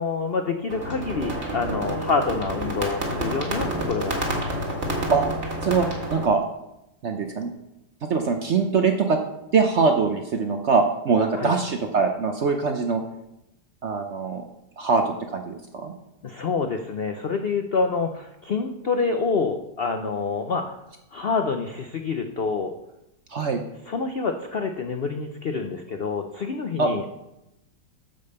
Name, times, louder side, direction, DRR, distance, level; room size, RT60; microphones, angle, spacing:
voice 1, 0.0-4.2 11.4-11.5 16.2-20.8 21.1-22.7 23.9-27.0, left 4 dB, 70° left, 6 dB, 0.5 m, -27 dB
sound 1, 0.7-6.3, right 1 dB, 40° right, 1.9 m, -29 dB
voice 2, 5.6-6.4 7.0-7.5 8.1-9.2 9.5-13.0 13.8-14.5 14.8-15.9 23.3-23.6 26.8-26.9, right 4 dB, 60° right, 5 dB, 0.7 m, -23 dB
9.2 x 5.3 x 6.7 m, 0.89 s
omnidirectional pair, 1.9 m